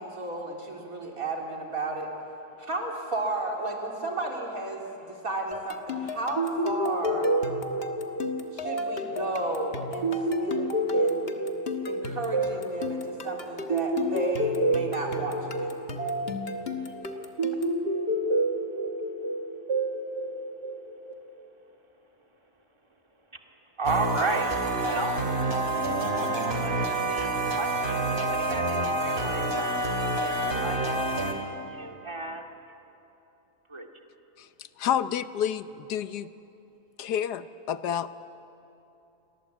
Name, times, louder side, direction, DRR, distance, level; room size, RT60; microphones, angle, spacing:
voice 1, 0.0-2.1 2.6-7.3 8.5-10.1 10.4-11.3 11.8-15.7 26.2-26.4, right 2 dB, 60° right, 0 dB, 3.9 m, -33 dB
sound 1, 5.5-17.8, left 5 dB, 40° left, 1.6 m, -38 dB
sound 2, 6.4-21.1, right 1 dB, 85° right, 2.8 m, -29 dB
voice 2, 23.8-24.5 24.8-25.2 26.6-26.8 27.1-30.8 31.7-32.4 33.7-33.9, right 3 dB, 15° right, 3 dB, 2.2 m, -33 dB
sound 3, 23.9-31.3, right 2 dB, 40° right, 2.7 m, -28 dB
voice 3, 34.4-36.3 37.0-38.1, left 9 dB, 85° left, 13 dB, 1.4 m, -30 dB
29.5 x 24.5 x 8.4 m, 2.9 s
omnidirectional pair, 1.7 m